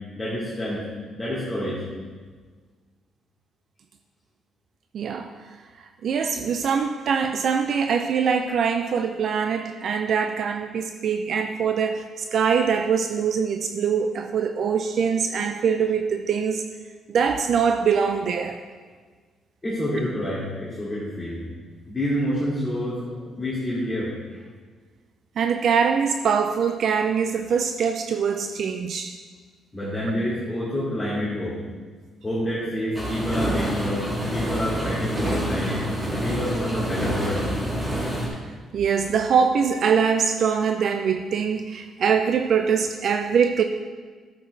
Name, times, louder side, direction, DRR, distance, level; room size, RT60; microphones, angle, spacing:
voice 1, 0.1-0.8 1.1-1.8 19.6-21.4 21.9-24.1 29.7-31.6 32.2-34.0 34.3-35.8 36.2-37.4, equal, 20° left, -9 dB, 2.8 m, -28 dB
voice 2, 4.9-5.3 6.0-12.0 12.3-16.6 17.1-18.6 25.4-29.2 38.7-43.6, right 6 dB, 60° right, 6 dB, 0.5 m, -23 dB
sound 1, 32.9-38.3, equal, 15° right, 3.1 m, -27 dB
12.0 x 7.8 x 3.4 m, 1.5 s
cardioid pair, 90°, 0 cm